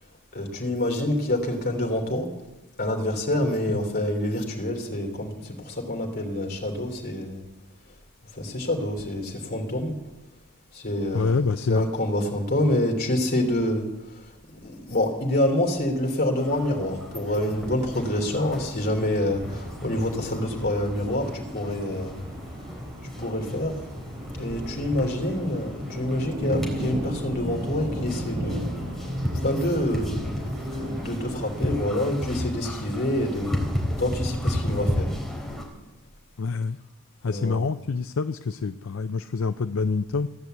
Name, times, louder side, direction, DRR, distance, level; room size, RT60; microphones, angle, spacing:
voice 1, 0.3-2.3 2.8-7.4 8.3-9.9 10.7-11.4 11.7-13.9 14.5-22.2 23.0-23.8 24.4-28.7 29.4-33.6 34.0-35.1 37.2-37.6, left 1 dB, 45° left, 1 dB, 3.4 m, -27 dB
voice 2, 11.1-11.9 36.4-36.8 37.2-40.3, left 4 dB, 65° left, 11 dB, 0.5 m, -26 dB
sound 1, 16.1-32.0, equal, 35° right, 8.0 m, -35 dB
sound 2, 16.4-35.6, left 1 dB, ahead, 3.9 m, -34 dB
16.0 x 10.5 x 8.2 m, 1.1 s
head